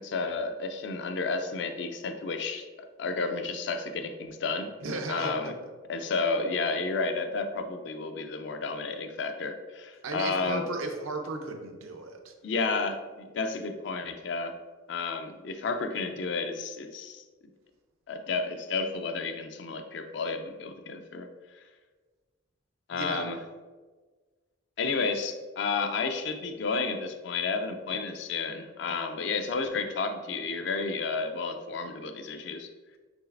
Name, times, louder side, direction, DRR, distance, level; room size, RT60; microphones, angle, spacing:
voice 1, 0.0-4.7 5.1-5.5 5.9-10.6 12.4-14.6 14.9-17.2 18.1-21.3 22.9-23.4 24.8-32.7, left 4 dB, 60° left, 7 dB, 0.4 m, -31 dB
voice 2, 4.8-5.3 10.0-12.3 22.9-23.3, right 3 dB, 85° right, 3 dB, 0.6 m, -35 dB
6.0 x 3.2 x 2.5 m, 1.4 s
head